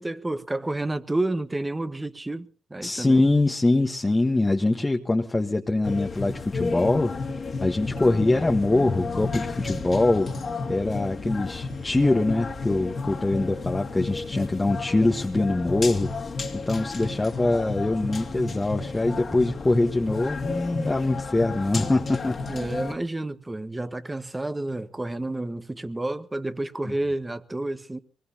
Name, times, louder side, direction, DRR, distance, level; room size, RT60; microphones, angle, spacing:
voice 1, 0.0-3.3 22.5-28.0, right 2 dB, 20° right, 1.4 m, -30 dB
voice 2, 2.8-7.1 7.6-10.3 10.7-16.1 16.5-22.4, left 2 dB, 20° left, 1.4 m, -23 dB
sound 1, 5.8-22.9, left 3 dB, 45° left, 2.3 m, -32 dB
23.5 x 20.0 x 2.9 m
supercardioid pair, 55°, 0 cm